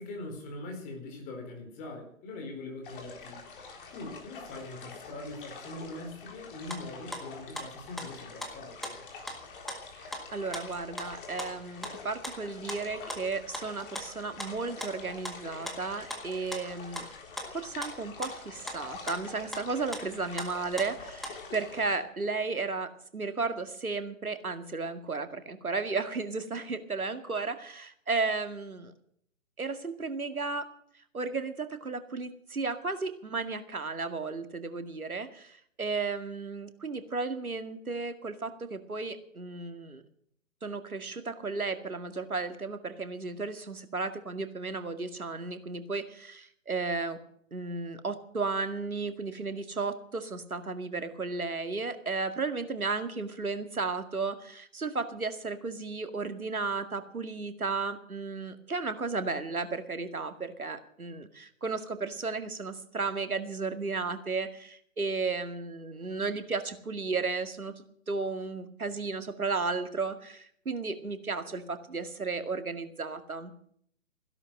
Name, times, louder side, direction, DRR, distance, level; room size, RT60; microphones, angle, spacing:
voice 1, 0.0-3.4 3.9-9.0, left 2 dB, 20° left, 2 dB, 4.5 m, -42 dB
brook in cleft, 2.8-22.0, left 4 dB, 40° left, 4.1 m, -47 dB
sound 1, 6.7-12.0 12.2-15.4 15.7-16.2 16.5-21.4, equal, ahead, 0.9 m, -41 dB
voice 2, 10.0-17.1 17.5-28.9 29.6-30.7 31.1-40.0 40.6-47.2 47.5-67.7 68.1-73.5, right 4 dB, 80° right, 9 dB, 2.2 m, -34 dB
16.0 x 11.5 x 6.4 m, 0.66 s
figure-of-eight pair, 140°, 42 cm